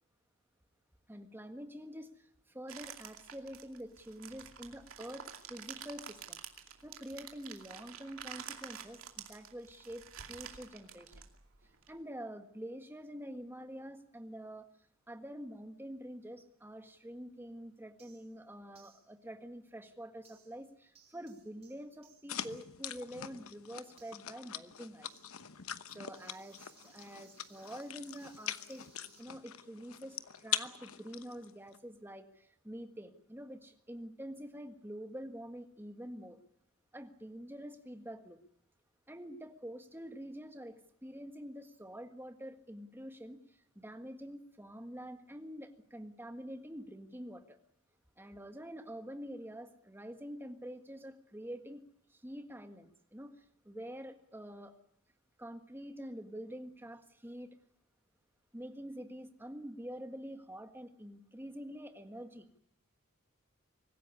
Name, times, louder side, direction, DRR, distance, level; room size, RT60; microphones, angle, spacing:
voice 1, 1.1-6.4 6.8-11.1 11.9-14.7 15.1-25.1 25.9-28.8 29.2-36.4 36.9-38.4 39.1-47.6 48.2-51.8 52.1-54.8 55.4-57.6 58.5-62.6, equal, 10° right, 7 dB, 1.6 m, -47 dB
sound 1, 2.7-11.9, right 8 dB, 70° right, 2.6 m, -49 dB
sound 2, 18.0-18.4 18.7-19.1 20.2-20.7 20.9-29.2, right 7 dB, 30° right, 4.1 m, -66 dB
sound 3, 22.3-31.8, left 10 dB, 75° left, 1.0 m, -43 dB
25.0 x 15.5 x 9.7 m, 0.70 s
head